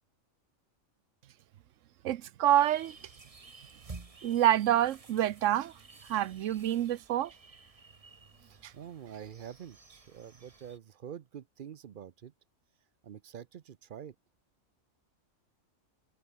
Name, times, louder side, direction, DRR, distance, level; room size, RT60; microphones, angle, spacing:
voice 1, 2.0-3.0 4.2-5.7 6.1-7.3 8.6-8.7, right 12 dB, 70° right, 1.0 m, -27 dB
sound 1, 2.4-10.8, right 3 dB, 25° right, 1.4 m, -53 dB
voice 2, 8.4-12.3 13.0-14.1, right 9 dB, 50° right, 0.7 m, -46 dB
omnidirectional pair, 1.4 m